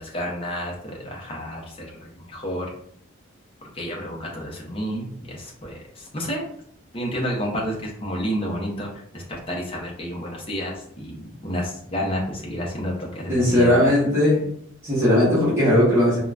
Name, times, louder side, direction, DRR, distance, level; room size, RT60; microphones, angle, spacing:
voice 1, 0.0-2.7 3.7-6.5 6.9-13.9, equal, 25° left, -2 dB, 0.6 m, -30 dB
voice 2, 13.3-14.5 14.8-16.2, left 1 dB, 10° right, -9 dB, 0.9 m, -18 dB
3.7 x 2.1 x 2.3 m, 0.67 s
head